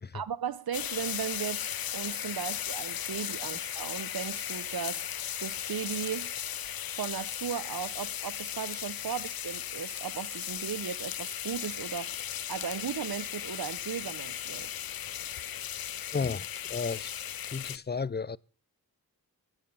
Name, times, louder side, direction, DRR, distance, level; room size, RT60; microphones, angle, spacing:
voice 1, 0.1-1.6 1.9-5.1 5.4-6.3 7.0-12.2 12.5-14.7, right 8 dB, 85° right, 0.9 m, -36 dB
sound 1, 0.7-17.8, left 10 dB, 75° left, 0.6 m, -36 dB
voice 2, 16.1-17.2 17.5-18.4, left 5 dB, 30° left, 0.6 m, -33 dB
13.5 x 11.0 x 7.1 m
cardioid pair, 50°, 36 cm